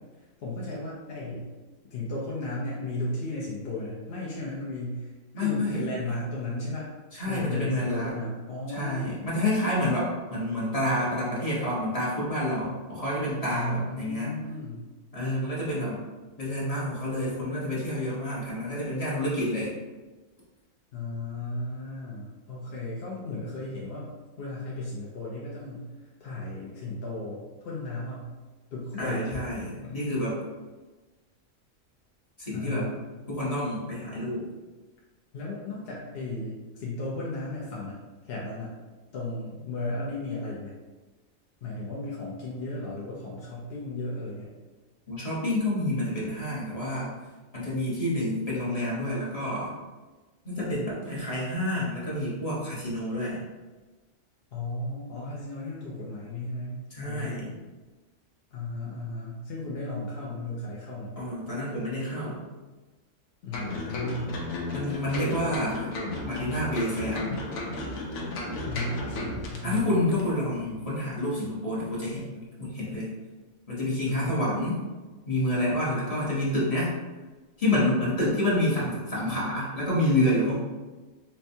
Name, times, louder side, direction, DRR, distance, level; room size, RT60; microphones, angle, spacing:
voice 1, 0.4-1.4 1.9-6.9 7.3-9.2 13.5-14.9 20.9-24.1 24.4-25.9 26.2-28.3 28.7-29.4 29.8-30.0 32.5-33.1 35.3-38.7 39.1-40.7 41.6-44.5 54.5-57.5 58.5-61.1 63.4-64.4 68.6-69.9 74.1-74.4, left 2 dB, 55° left, -6 dB, 0.7 m, -35 dB
voice 2, 5.3-5.9 7.1-8.1 8.7-14.3 15.1-16.0 16.4-19.7 28.9-30.4 32.4-32.9 33.3-34.4 45.1-47.1 47.5-49.7 50.4-53.4 56.9-57.5 61.2-62.4 64.7-65.9 66.2-67.4 69.6-73.1 73.7-74.8 75.3-76.9 77.6-80.5, left 1 dB, 30° left, -7 dB, 0.9 m, -28 dB
sound 1, 63.5-69.8 70.1-70.2, left 2 dB, 85° left, 1.1 m, -34 dB
4.4 x 2.2 x 2.6 m, 1.2 s
omnidirectional pair, 1.4 m